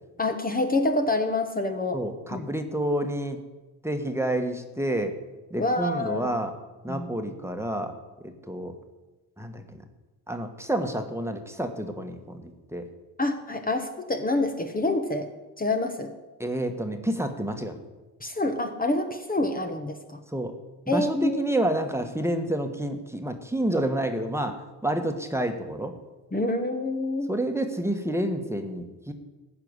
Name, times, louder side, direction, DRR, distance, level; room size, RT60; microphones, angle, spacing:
voice 1, 0.2-2.0 2.3-2.5 5.6-6.3 6.9-7.1 13.2-15.3 15.6-16.1 18.2-20.2 20.9-21.4 26.3-27.3, left 2 dB, 20° left, 5 dB, 1.3 m, -27 dB
voice 2, 1.9-3.4 3.8-5.1 5.5-6.5 6.8-8.0 8.2-8.7 9.4-9.8 10.3-12.8 16.4-17.8 20.3-20.5 20.9-25.9 27.3-29.1, right 1 dB, 5° right, 5 dB, 1.5 m, -29 dB
15.0 x 5.9 x 9.7 m, 1.1 s
cardioid pair, 85°, 41 cm